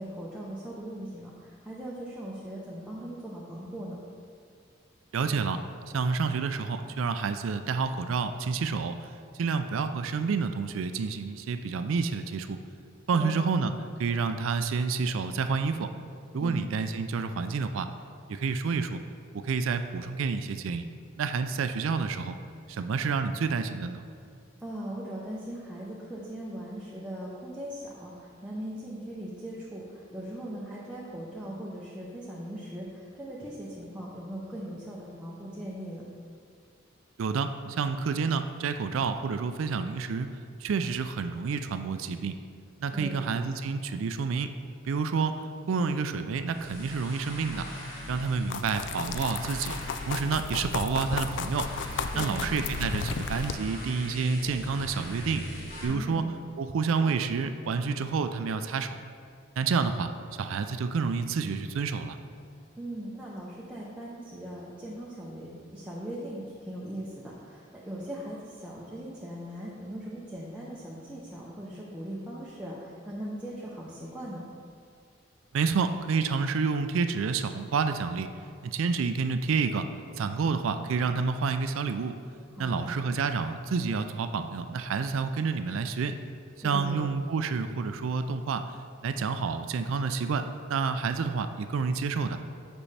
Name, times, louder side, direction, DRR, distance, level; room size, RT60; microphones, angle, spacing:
voice 1, 0.0-4.0 13.1-13.4 16.4-16.6 24.6-36.1 42.9-43.2 52.1-52.5 55.9-56.2 62.8-74.4 82.5-82.9 86.6-87.0, right 1 dB, 5° right, -7 dB, 0.7 m, -39 dB
voice 2, 5.1-5.6 5.9-9.1 9.4-12.6 13.1-13.7 14.0-15.9 16.3-17.9 18.3-19.0 19.4-20.9 21.2-22.4 22.7-24.0 37.2-40.3 40.6-42.4 42.8-44.5 44.8-45.4 45.7-47.7 48.1-49.8 50.1-51.7 52.2-55.4 55.8-56.2 56.6-59.0 59.6-60.1 60.4-62.2 75.5-78.3 78.6-79.9 80.2-82.2 82.6-86.2 86.6-88.7 89.0-92.4, right 5 dB, 85° right, 9 dB, 0.4 m, -29 dB
sound 1, 46.5-55.8, equal, 45° left, 1.8 m, -41 dB
sound 2, 48.5-53.5, left 5 dB, 65° left, 0.3 m, -34 dB
8.6 x 5.4 x 3.3 m, 2.3 s
head